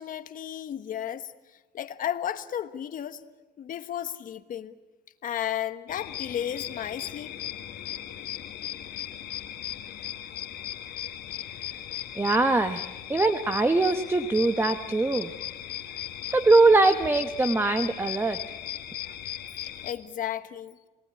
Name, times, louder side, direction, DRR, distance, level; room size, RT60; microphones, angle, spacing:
voice 1, 0.0-3.2 3.6-4.7 5.2-7.4 19.1-19.2 19.8-20.8, left 10 dB, 50° left, 10 dB, 1.3 m, -34 dB
sound 1, 5.9-19.9, left 12 dB, 70° left, 2.2 m, -37 dB
voice 2, 12.2-15.3 16.3-18.4, right 2 dB, 15° right, 8 dB, 1.2 m, -22 dB
28.5 x 19.0 x 9.7 m, 1.2 s
cardioid pair, 110°, 17 cm